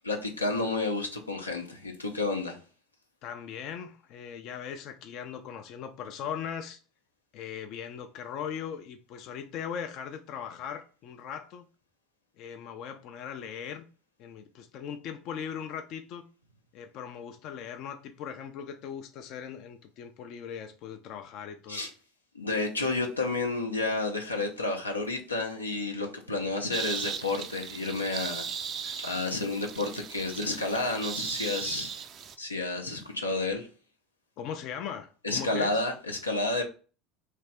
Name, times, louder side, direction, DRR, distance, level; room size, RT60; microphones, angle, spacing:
voice 1, 0.0-2.6 21.7-21.9 22.3-28.4 28.8-31.9 32.4-33.7 35.2-36.6, left 2 dB, 85° left, 0.7 m, -30 dB
voice 2, 3.2-6.8 7.3-11.7 12.4-13.9 14.2-16.3 16.7-21.9 34.4-35.8, left 8 dB, 50° left, 0.4 m, -39 dB
sound 1, 26.7-32.4, right 7 dB, 40° right, 0.4 m, -37 dB
3.3 x 2.8 x 3.3 m
figure-of-eight pair, 70°, 0 cm